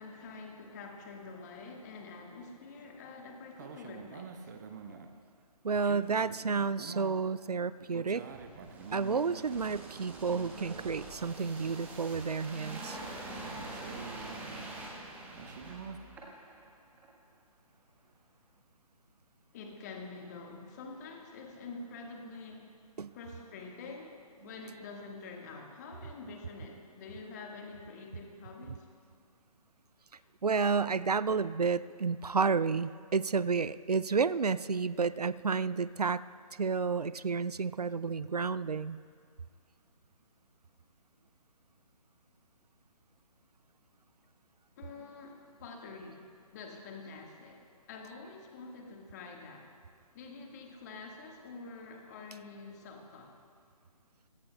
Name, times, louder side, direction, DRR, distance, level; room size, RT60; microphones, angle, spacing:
voice 1, 0.0-4.5 4.9-5.0 19.5-22.7 23.1-28.9 30.2-30.3 44.8-46.2 46.5-47.6 47.9-49.7 50.1-53.3, left 3 dB, 25° left, 1 dB, 1.7 m, -47 dB
sound 1, 3.5-5.1 5.8-7.2 7.8-11.2 11.6-12.8 13.4-14.6 15.3-16.0, right 6 dB, 30° right, 0.8 m, -47 dB
voice 2, 5.6-8.2 8.9-13.0 23.0-23.1 30.4-36.2 36.6-39.0, right 5 dB, 80° right, 17 dB, 0.4 m, -31 dB
sound 2, 8.3-16.6 17.0-17.1, right 2 dB, 10° right, 1.3 m, -45 dB
26.0 x 17.0 x 2.3 m, 2.1 s
figure-of-eight pair, 140°, 20 cm